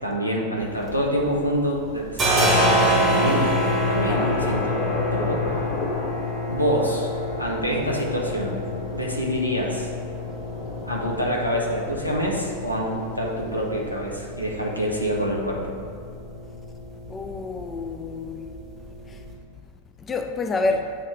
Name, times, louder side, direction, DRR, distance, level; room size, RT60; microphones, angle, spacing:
voice 1, 0.0-4.8 5.1-5.6 6.5-7.1 7.4-8.6 8.9-9.9 10.9-15.6, equal, 90° left, 0.8 m, -26 dB
sound 1, 0.6-1.5 1.8-19.3, left 1 dB, 20° right, 1.5 m, -27 dB
Thunder / Rain, 3.2-14.1, left 2 dB, 45° left, 0.7 m, -35 dB
voice 2, 4.0-4.4 17.1-18.5 19.1-19.2 20.0-21.0, left 3 dB, 20° left, 0.3 m, -28 dB
7.4 x 2.9 x 4.7 m
figure-of-eight pair, 90°, 0 cm